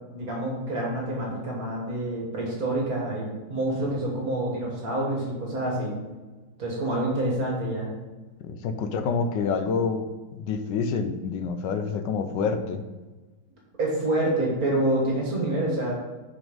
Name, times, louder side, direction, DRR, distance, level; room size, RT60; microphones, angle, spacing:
voice 1, 0.1-5.9 6.6-7.9 13.8-15.9, right 1 dB, 50° right, -2 dB, 1.9 m, -27 dB
voice 2, 8.4-12.8, left 5 dB, 75° left, 8 dB, 1.2 m, -27 dB
6.2 x 5.1 x 5.2 m, 1.2 s
omnidirectional pair, 2.1 m